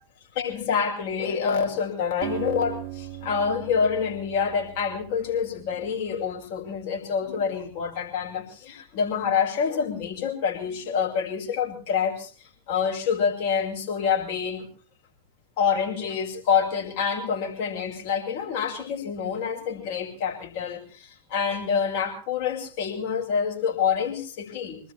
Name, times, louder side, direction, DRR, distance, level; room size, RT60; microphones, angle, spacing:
voice 1, 0.3-14.7 15.6-24.8, left 6 dB, 50° left, 1 dB, 5.5 m, -27 dB
Acoustic guitar, 2.2-5.8, right 14 dB, 40° right, 2.6 m, -38 dB
26.0 x 19.5 x 2.8 m, 0.38 s
figure-of-eight pair, 90°, 0 cm